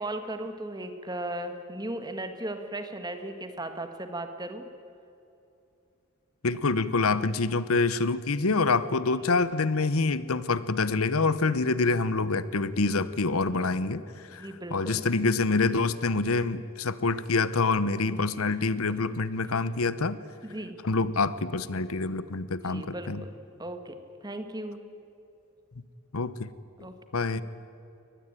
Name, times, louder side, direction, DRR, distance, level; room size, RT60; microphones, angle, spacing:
voice 1, 0.0-4.7 9.3-9.4 11.2-11.8 13.5-13.7 14.4-15.0 18.0-18.5 18.9-19.0 19.5-19.6 20.4-20.8 22.7-23.1 23.6-24.0 24.2-24.8 26.8-26.9, right 1 dB, 20° right, 8 dB, 1.7 m, -37 dB
voice 2, 6.4-20.2 20.8-23.2 26.1-26.5 27.1-27.4, left 3 dB, 75° left, 16 dB, 0.9 m, -26 dB
23.5 x 19.5 x 9.1 m, 2.7 s
head